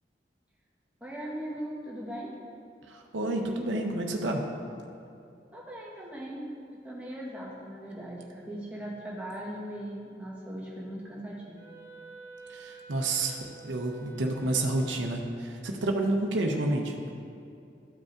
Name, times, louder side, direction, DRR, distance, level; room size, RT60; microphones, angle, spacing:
voice 1, 1.0-2.3 5.5-11.7, right 1 dB, 10° right, -5 dB, 1.1 m, -39 dB
voice 2, 2.9-4.4 12.5-13.4 13.6-16.9, right 2 dB, 90° right, 2 dB, 0.7 m, -29 dB
Wind instrument woodwind instrument, 11.5-15.4, right 4 dB, 40° left, 1.6 m, -49 dB
12.5 x 5.2 x 2.4 m, 2.6 s
head